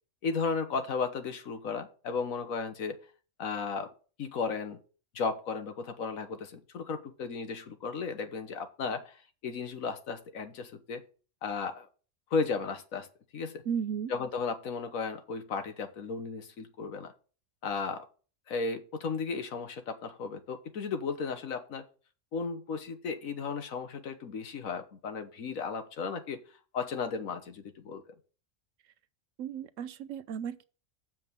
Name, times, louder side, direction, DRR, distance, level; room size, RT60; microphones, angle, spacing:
voice 1, 0.2-3.0 3.4-3.9 4.2-4.8 5.1-9.2 9.4-11.0 11.4-11.9 12.3-13.1 13.3-13.6 14.1-17.1 17.6-18.0 18.5-21.9 22.3-26.4 26.7-28.1, left 5 dB, 85° left, 1.5 m, -34 dB
voice 2, 13.7-14.1 29.4-30.6, right 7 dB, 75° right, 1.0 m, -34 dB
7.4 x 5.2 x 6.6 m
omnidirectional pair, 1.4 m